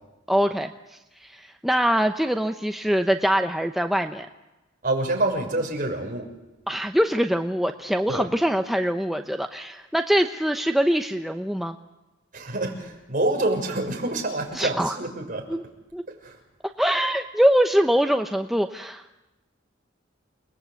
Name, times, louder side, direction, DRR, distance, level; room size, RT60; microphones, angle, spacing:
voice 1, 0.3-0.7 1.2-4.3 6.7-11.8 14.5-15.0 15.5-15.6 15.9-16.0 16.8-19.3, equal, ahead, 5 dB, 0.8 m, -23 dB
voice 2, 4.8-6.3 8.1-8.3 12.3-15.5 16.1-16.4, right 2 dB, 45° right, 1 dB, 6.1 m, -27 dB
29.5 x 20.5 x 8.3 m, 1.0 s
head